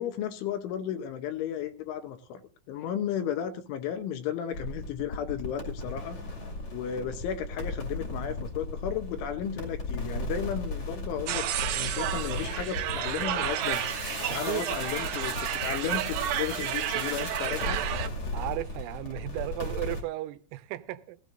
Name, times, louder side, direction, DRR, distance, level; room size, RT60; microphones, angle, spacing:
voice 1, 0.0-2.4 2.7-6.2 6.7-13.8 14.3-17.8, left 9 dB, 75° left, 3.2 m, -34 dB
sound 1, 4.5-20.0, left 2 dB, 40° left, 2.1 m, -36 dB
sound 2, 11.3-18.1, right 11 dB, 70° right, 2.7 m, -31 dB
voice 2, 14.3-14.6 18.3-21.2, right 16 dB, 90° right, 3.5 m, -35 dB
16.0 x 16.0 x 2.6 m
omnidirectional pair, 5.9 m